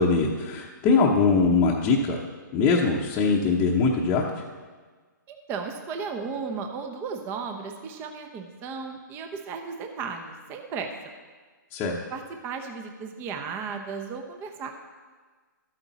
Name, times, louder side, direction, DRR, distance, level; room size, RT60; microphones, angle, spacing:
voice 1, 0.0-2.2 2.5-4.2 11.7-12.0, left 4 dB, 20° left, -4 dB, 0.9 m, -22 dB
voice 2, 5.3-10.9 12.1-14.7, right 5 dB, 20° right, 4 dB, 0.8 m, -35 dB
12.5 x 8.8 x 4.1 m, 1.4 s
hypercardioid pair, 150°, 11 cm